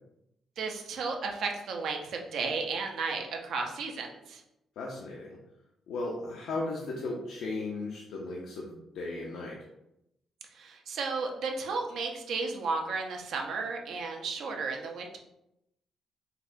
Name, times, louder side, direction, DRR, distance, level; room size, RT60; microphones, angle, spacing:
voice 1, 0.6-4.4 10.5-15.2, right 4 dB, 70° right, 2 dB, 0.5 m, -33 dB
voice 2, 4.8-5.4 5.9-9.6, left 2 dB, 80° left, -3 dB, 0.5 m, -36 dB
4.0 x 2.2 x 2.6 m, 0.85 s
cardioid pair, 90°, 0 cm